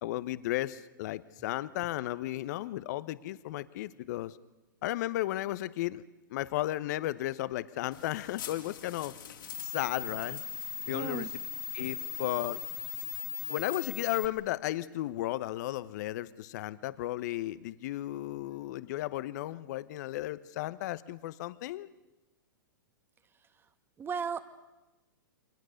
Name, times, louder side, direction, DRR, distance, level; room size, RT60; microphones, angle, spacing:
voice 1, 0.0-4.3 4.8-6.0 6.3-9.1 9.6-10.4 10.9-11.3 11.7-12.6 13.5-21.9, left 15 dB, 55° left, 16 dB, 1.1 m, -34 dB
sound 1, 7.9-14.2, left 7 dB, 70° left, 3.4 m, -39 dB
voice 2, 10.9-11.3 23.4-23.7 24.0-24.4, right 6 dB, 20° right, 12 dB, 1.7 m, -36 dB
29.0 x 24.0 x 6.6 m, 1.1 s
hypercardioid pair, 115°, 11 cm